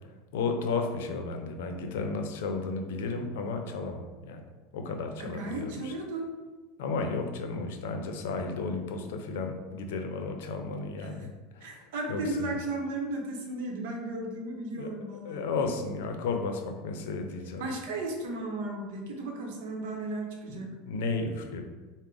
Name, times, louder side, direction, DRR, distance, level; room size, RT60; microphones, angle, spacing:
voice 1, 0.3-4.4 4.7-5.9 6.8-12.5 14.8-17.7 20.5-21.6, left 4 dB, 85° left, 5 dB, 0.5 m, -33 dB
voice 2, 5.2-6.3 11.0-11.1 11.6-15.4 17.6-20.7, right 2 dB, 80° right, 2 dB, 0.9 m, -35 dB
4.7 x 2.1 x 3.7 m, 1.2 s
supercardioid pair, 135°, 0 cm